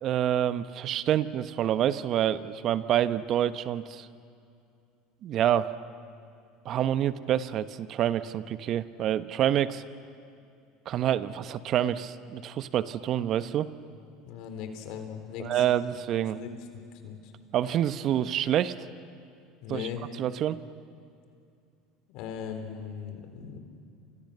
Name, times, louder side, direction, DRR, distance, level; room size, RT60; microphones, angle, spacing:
voice 1, 0.0-4.1 5.2-5.7 6.6-9.8 10.9-13.7 15.4-16.4 17.5-18.7 19.7-19.9 20.2-20.6, right 11 dB, 50° right, 13 dB, 1.1 m, -27 dB
voice 2, 14.3-15.6 16.4-17.3 19.6-20.0 22.1-23.6, left 7 dB, 65° left, 6 dB, 3.9 m, -39 dB
29.5 x 27.0 x 6.9 m, 2.5 s
hypercardioid pair, 80°, 0 cm